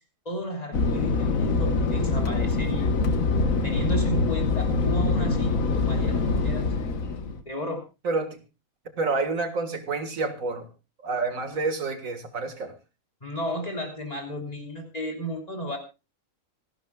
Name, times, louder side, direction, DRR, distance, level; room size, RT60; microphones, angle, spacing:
voice 1, 0.3-3.0 3.6-6.7 7.5-7.8 13.2-15.8, equal, 30° left, 3 dB, 3.5 m, -33 dB
Fixed-wing aircraft airplane, 0.7-7.4, left 3 dB, 75° left, 1.6 m, -24 dB
voice 2, 8.0-8.4 9.0-10.7 11.0-12.8, right 3 dB, 75° right, 7 dB, 2.2 m, -28 dB
26.0 x 11.5 x 2.3 m, 0.29 s
omnidirectional pair, 1.4 m